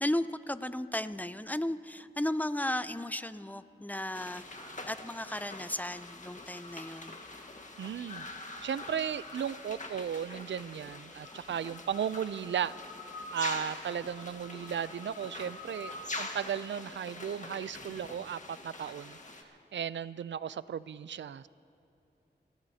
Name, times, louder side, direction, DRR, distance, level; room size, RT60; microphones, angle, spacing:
voice 1, 0.0-4.4 4.9-7.2, left 1 dB, 10° left, 13 dB, 0.5 m, -34 dB
sound 1, 4.1-19.4, left 2 dB, 40° left, 1.6 m, -44 dB
voice 2, 7.8-12.7 13.3-19.2 19.7-21.5, right 8 dB, 80° right, 17 dB, 0.4 m, -35 dB
29.0 x 16.5 x 2.8 m, 2.8 s
wide cardioid pair, 60°, 19 cm